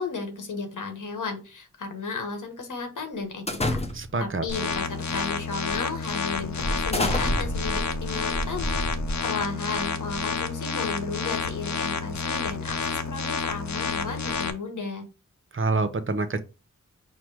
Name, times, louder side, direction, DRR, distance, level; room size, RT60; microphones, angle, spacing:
voice 1, 0.0-3.8 4.2-8.7 9.2-15.1, left 4 dB, 85° left, 1.2 m, -34 dB
sound 1, 3.5-4.3 5.1-5.4 5.8-5.9 6.6-9.5, left 1 dB, 20° left, 0.7 m, -29 dB
voice 2, 3.9-4.4 15.5-16.4, right 3 dB, 40° right, 0.7 m, -26 dB
sound 2, 4.5-14.5, left 5 dB, 70° left, 0.8 m, -30 dB
4.9 x 2.1 x 4.6 m
cardioid pair, 50°, 30 cm